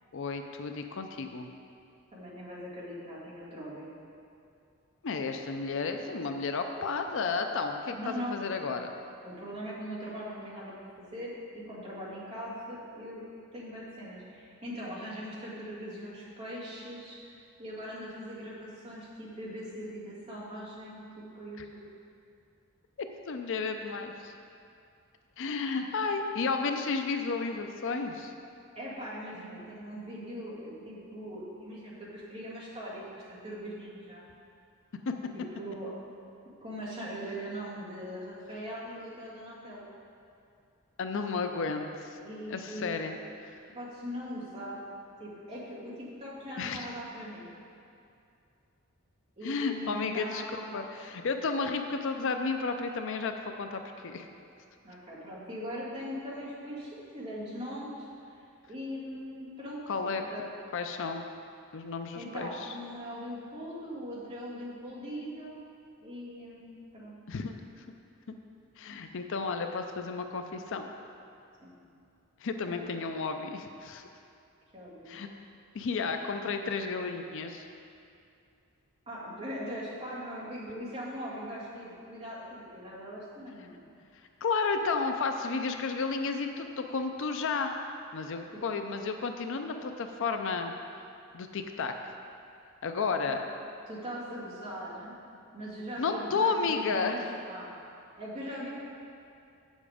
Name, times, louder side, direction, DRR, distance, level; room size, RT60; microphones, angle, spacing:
voice 1, 0.1-1.5 5.0-8.9 21.6-21.7 23.3-24.3 25.4-28.3 35.1-35.2 41.0-42.2 42.5-43.2 43.4-43.6 46.6-46.9 49.4-53.3 53.6-54.3 59.9-60.2 60.7-61.2 61.7-62.7 67.3-68.0 68.8-70.9 72.4-74.0 75.1-75.3 75.7-77.7 84.4-87.7 88.1-90.7 91.3-91.9 92.8-93.4 96.0-97.3, left 4 dB, 60° left, 6 dB, 0.5 m, -32 dB
voice 2, 2.1-3.9 7.9-8.4 9.2-13.3 13.5-21.1 21.3-21.8 28.8-34.2 35.3-35.9 36.6-39.8 42.2-43.0 43.7-44.8 45.2-47.5 49.4-50.8 54.8-58.4 58.7-60.4 62.2-65.6 66.0-67.2 71.6-71.8 74.7-75.2 79.1-83.8 93.2-93.4 93.8-95.1 95.5-97.2 97.5-97.7 98.2-98.7, equal, 30° right, -8 dB, 2.2 m, -41 dB
7.7 x 7.2 x 4.9 m, 2.5 s
head